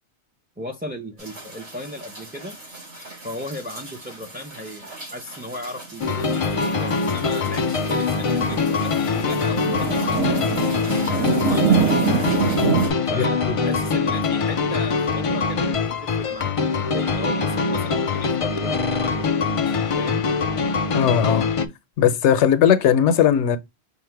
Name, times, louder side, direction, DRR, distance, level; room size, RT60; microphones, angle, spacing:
voice 1, 0.6-2.6 3.2-10.6 11.0-12.4 13.1-20.2, left 1 dB, 10° right, 0.4 m, -36 dB
sound 1, 1.2-12.9, right 5 dB, 70° right, 3.3 m, -27 dB
sound 2, 6.0-21.7, left 4 dB, 50° left, 0.4 m, -23 dB
voice 2, 13.2-13.5 20.9-21.5 22.0-23.6, left 9 dB, 85° left, 0.9 m, -18 dB
5.6 x 2.1 x 4.4 m
omnidirectional pair, 1.1 m